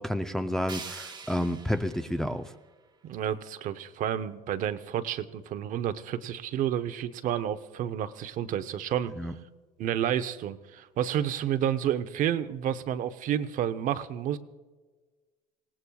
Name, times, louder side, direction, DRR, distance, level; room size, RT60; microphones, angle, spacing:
voice 1, 0.0-2.5 9.2-9.3, left 1 dB, 5° left, 7 dB, 0.4 m, -30 dB
sound 1, 0.7-3.7, right 5 dB, 25° right, 1.2 m, -46 dB
voice 2, 3.0-9.1 9.8-14.4, right 10 dB, 50° right, 12 dB, 0.7 m, -30 dB
26.0 x 18.0 x 2.3 m, 1.4 s
cardioid pair, 135°, 18 cm